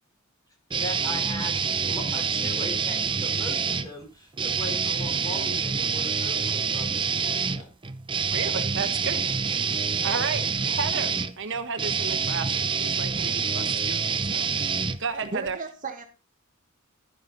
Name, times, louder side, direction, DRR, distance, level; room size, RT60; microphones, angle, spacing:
voice 1, 0.7-7.7 9.2-9.3 10.0-10.1, equal, 15° left, 1 dB, 4.2 m, -39 dB
sound 1, 0.7-3.9 4.3-15.5, right 5 dB, 25° right, 0.7 m, -27 dB
voice 2, 8.3-9.2 10.0-14.7 15.0-15.6, right 5 dB, 60° right, 7 dB, 1.2 m, -33 dB
voice 3, 15.3-16.0, right 3 dB, 40° right, 5 dB, 1.4 m, -34 dB
11.5 x 9.9 x 4.0 m, 0.32 s
head